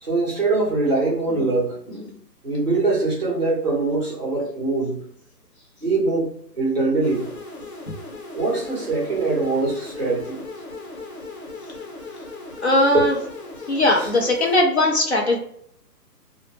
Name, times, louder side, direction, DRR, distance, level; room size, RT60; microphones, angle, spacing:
voice 1, 0.0-2.1 2.4-5.1 5.8-6.3 6.6-7.3 8.3-10.4 12.9-13.0 14.0-14.1, right 3 dB, 30° right, -5 dB, 0.5 m, -23 dB
sound 1, 7.0-14.6, left 2 dB, 60° left, 1.0 m, -38 dB
voice 2, 12.6-13.2 13.7-15.4, left 1 dB, 45° left, 0 dB, 0.5 m, -19 dB
2.0 x 2.0 x 3.1 m, 0.66 s
hypercardioid pair, 165°, 49 cm